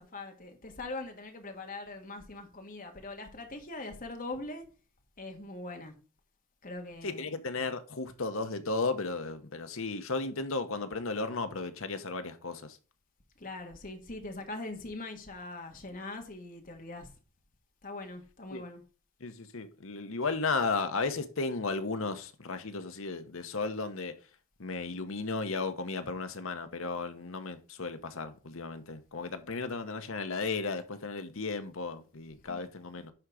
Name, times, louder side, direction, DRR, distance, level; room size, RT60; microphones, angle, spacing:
voice 1, 0.0-4.7 5.2-6.0 6.6-7.3 13.4-17.1 17.8-18.8 32.5-32.6, left 2 dB, 40° left, 1.6 m, -42 dB
voice 2, 7.0-12.8 18.5-18.6 19.2-24.2 24.6-33.1, left 3 dB, 65° left, 1.0 m, -34 dB
10.5 x 3.9 x 4.8 m
head